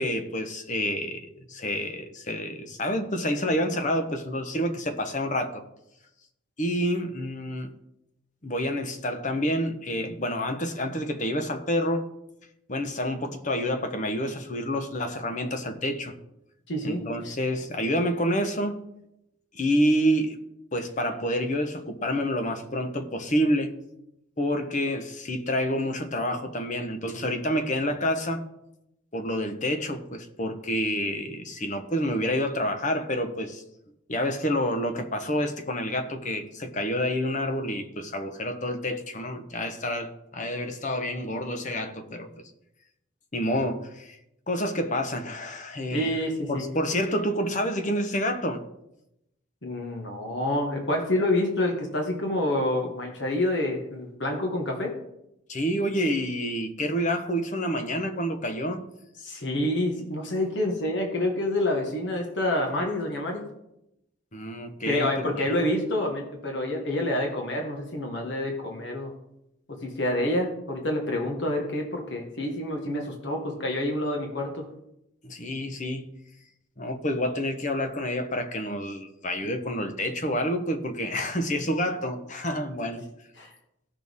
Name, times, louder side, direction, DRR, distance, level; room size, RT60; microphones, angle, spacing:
voice 1, 0.0-5.6 6.6-7.7 8.4-12.1 12.7-16.1 16.8-18.8 19.5-20.4 20.7-23.7 24.4-28.4 29.1-33.6 34.1-42.4 43.3-44.2 44.5-46.1 46.5-48.6 55.5-58.9 64.3-65.7 75.2-76.1 76.8-83.0, equal, 35° left, 1.0 m, -28 dB
voice 2, 16.7-17.0 45.9-46.6 49.6-54.9 59.2-63.5 64.8-69.1 69.7-74.6 83.4-83.5, left 1 dB, 60° left, 1.5 m, -28 dB
16.0 x 6.5 x 3.6 m
head